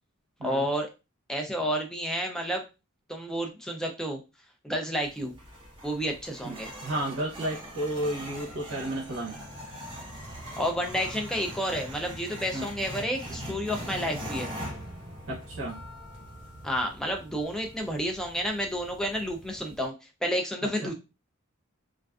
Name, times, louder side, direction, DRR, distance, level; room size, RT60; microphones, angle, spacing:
voice 1, 0.4-0.9 1.3-2.6 3.1-4.2 4.6-5.3 5.8-6.7 10.6-14.5 16.6-19.9 20.2-20.9, equal, 5° left, 2 dB, 0.3 m, -30 dB
sound 1, 5.0-19.8, equal, 25° right, 0.8 m, -42 dB
voice 2, 6.8-9.4 12.5-12.7 15.3-15.8 20.6-20.9, right 1 dB, 70° right, -3 dB, 0.6 m, -32 dB
2.4 x 2.3 x 2.3 m, 0.28 s
head